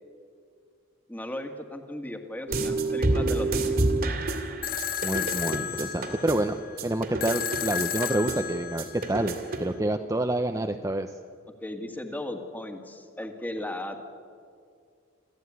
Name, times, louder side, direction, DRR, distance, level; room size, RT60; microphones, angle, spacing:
voice 1, 1.1-3.8 6.1-6.2 11.6-14.0, left 1 dB, 10° left, 5 dB, 1.9 m, -36 dB
sound 1, 2.5-9.7, right 2 dB, 50° right, 2.5 m, -29 dB
sound 2, 4.6-9.6, left 9 dB, 45° left, 0.8 m, -33 dB
voice 2, 5.0-6.6 6.8-11.1, right 1 dB, 15° right, 6 dB, 0.7 m, -28 dB
26.5 x 14.5 x 9.6 m, 2.3 s
head